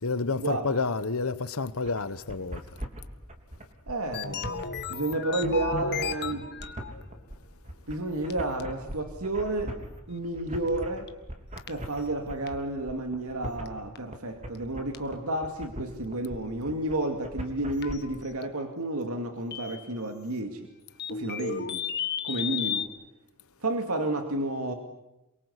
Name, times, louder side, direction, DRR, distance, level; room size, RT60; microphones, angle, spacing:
voice 1, 0.0-2.6, left 4 dB, 65° left, 1.1 m, -29 dB
sound 1, 1.8-18.0, right 1 dB, 30° right, 3.6 m, -40 dB
voice 2, 3.9-4.6 4.9-6.5 7.9-9.8 10.1-11.1 11.7-20.7 21.1-21.8 22.2-22.9 23.6-24.7, right 2 dB, 75° right, 2.4 m, -31 dB
sound 2, 4.1-7.1 7.9-8.0 8.3-8.4 8.6-8.7 10.7-10.8 11.1-11.2 11.6-11.7 12.5-12.6 13.7-13.8 14.0-14.1 14.5-14.6 14.9-15.0 17.8-18.4 19.5-19.9 21.0-22.9, left 6 dB, 50° left, 1.6 m, -33 dB
27.5 x 23.5 x 8.3 m
head